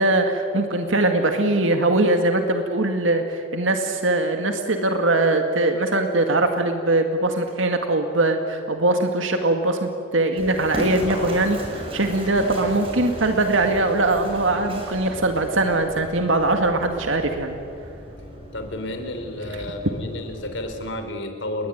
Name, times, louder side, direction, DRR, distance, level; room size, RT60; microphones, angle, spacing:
voice 1, 0.0-17.6, right 2 dB, 85° right, 5 dB, 2.1 m, -21 dB
Run, 10.4-20.9, equal, 30° right, 6.3 m, -35 dB
voice 2, 18.5-21.7, left 1 dB, 75° left, 6 dB, 4.3 m, -31 dB
29.5 x 21.5 x 9.4 m, 2.6 s
head